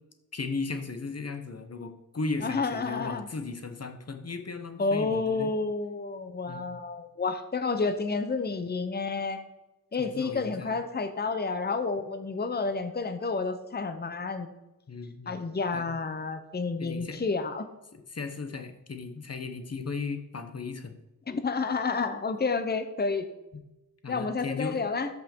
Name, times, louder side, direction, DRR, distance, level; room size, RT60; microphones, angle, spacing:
voice 1, 0.3-5.5 6.5-6.7 10.0-10.7 14.9-15.4 15.7-15.9 16.8-17.2 17.9-21.0 24.0-24.8, left 4 dB, 45° left, 7 dB, 1.2 m, -36 dB
voice 2, 2.4-3.3 4.8-9.4 9.9-14.5 15.3-17.7 21.3-23.3 24.1-25.1, left 4 dB, 25° left, 9 dB, 0.8 m, -30 dB
13.5 x 5.5 x 4.5 m, 0.97 s
wide cardioid pair, 95°, 36 cm